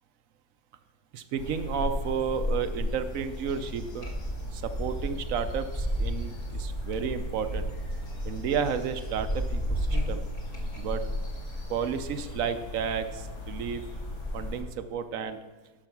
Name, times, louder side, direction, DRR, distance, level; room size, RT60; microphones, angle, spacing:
voice 1, 1.1-4.1 4.5-7.7 8.2-10.2 10.8-11.0 11.7-13.8 14.3-15.4, right 7 dB, 70° right, 10 dB, 1.0 m, -32 dB
sound 1, 1.4-14.6, left 1 dB, 55° left, 2.7 m, -36 dB
sound 2, 3.8-10.8, right 1 dB, 35° left, 1.8 m, -34 dB
12.5 x 5.0 x 5.9 m, 1.2 s
omnidirectional pair, 1.5 m